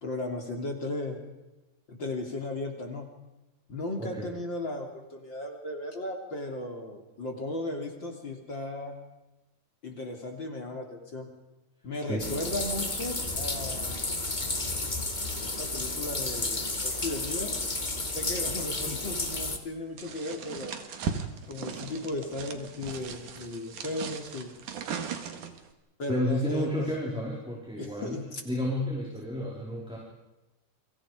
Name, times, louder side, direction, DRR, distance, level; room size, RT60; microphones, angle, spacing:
voice 1, 0.0-1.2 1.9-3.1 3.7-9.0 9.8-11.3 11.8-14.0 15.4-17.6 18.1-20.7 21.5-24.5 26.0-26.8 27.8-28.4, left 2 dB, 35° left, 3 dB, 3.7 m, -36 dB
voice 2, 4.0-4.3 12.0-12.3 26.1-30.0, equal, ahead, -3 dB, 4.6 m, -31 dB
sound 1, 12.2-19.6, left 2 dB, 15° left, 1.7 m, -32 dB
sound 2, 20.0-25.7, right 6 dB, 75° right, 3.5 m, -38 dB
29.5 x 26.0 x 5.2 m, 1.0 s
omnidirectional pair, 3.7 m